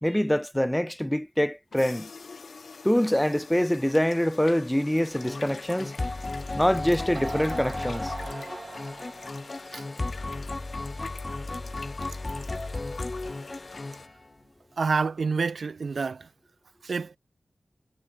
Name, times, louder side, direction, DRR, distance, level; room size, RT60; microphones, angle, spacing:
voice 1, 0.0-2.1 2.8-5.9 6.5-8.1, equal, 5° left, 0.6 m, -25 dB
sound 1, 1.7-14.1, left 4 dB, 65° left, 3.3 m, -45 dB
sound 2, 5.1-14.3, left 2 dB, 30° left, 1.1 m, -35 dB
sound 3, 6.0-6.1 6.8-6.9 7.1-9.6, right 3 dB, 45° right, 5.9 m, -40 dB
voice 2, 14.8-16.3 16.8-17.2, right 4 dB, 70° right, 1.7 m, -28 dB
wide cardioid pair, 95°, 0 cm